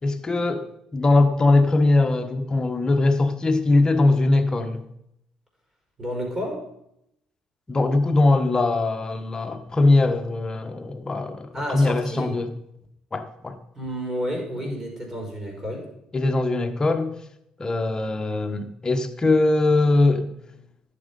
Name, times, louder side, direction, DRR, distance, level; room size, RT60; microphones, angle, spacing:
voice 1, 0.0-0.7 0.9-4.9 7.7-12.5 13.1-13.6 14.6-14.7 16.1-17.1 17.6-20.3, left 2 dB, 30° left, 1.4 m, -21 dB
voice 2, 6.0-6.6 11.5-12.3 13.7-15.8, equal, 15° right, 5.2 m, -30 dB
11.0 x 7.6 x 5.4 m
supercardioid pair, 70°, 2 cm